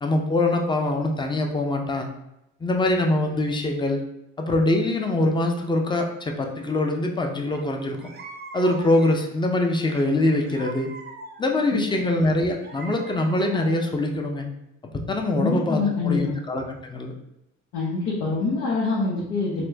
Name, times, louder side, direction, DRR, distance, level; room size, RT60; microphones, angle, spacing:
voice 1, 0.0-2.1 2.6-4.0 4.4-8.1 8.5-10.9 11.4-14.4 14.9-17.1, left 2 dB, 15° left, 2 dB, 0.5 m, -23 dB
sound 1, 7.5-7.6 8.0-9.4 9.9-11.7 12.2-14.0, right 3 dB, 35° right, 0.5 m, -42 dB
voice 2, 15.4-16.3 17.7-19.6, left 4 dB, 90° left, -5 dB, 0.8 m, -25 dB
4.2 x 2.1 x 2.7 m, 0.87 s
cardioid pair, 90°, 30 cm